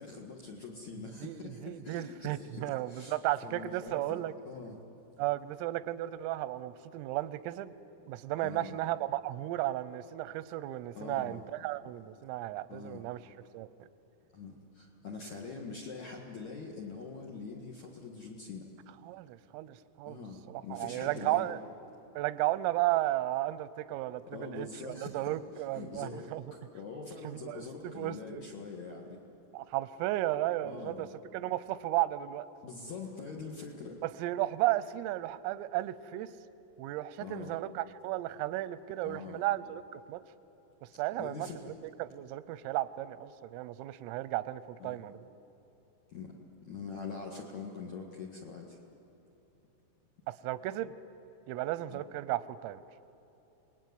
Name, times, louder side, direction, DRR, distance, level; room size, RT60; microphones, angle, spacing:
voice 1, 0.0-3.2 3.4-4.8 8.4-8.8 10.9-11.4 12.7-13.0 14.3-18.7 20.1-21.5 24.3-25.4 25.7-29.2 30.6-31.1 32.6-34.0 37.2-37.6 39.0-39.4 41.2-41.7 44.8-45.1 46.1-46.3 46.6-48.8 51.9-52.0, left 4 dB, 60° left, -1 dB, 2.0 m, -44 dB
voice 2, 1.2-4.3 5.2-7.7 8.1-13.2 13.5-13.7 19.1-20.2 20.5-21.6 22.2-26.4 27.2-28.4 29.5-31.1 31.3-32.5 34.0-36.3 36.8-40.2 40.8-41.7 42.0-45.2 50.3-50.9 51.5-52.8, right 15 dB, 90° right, 15 dB, 3.4 m, -34 dB
27.5 x 20.0 x 9.5 m, 3.0 s
omnidirectional pair, 5.8 m